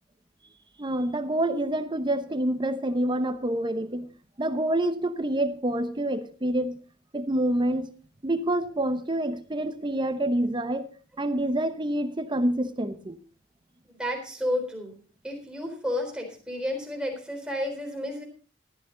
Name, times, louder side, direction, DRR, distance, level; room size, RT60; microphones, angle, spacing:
voice 1, 0.8-4.1 4.4-6.8 7.1-7.9 8.2-10.9 11.2-13.2, right 1 dB, 25° right, 0.9 m, -27 dB
voice 2, 13.9-15.0 15.2-18.2, left 1 dB, 5° right, 4.0 m, -31 dB
14.0 x 13.5 x 3.9 m
head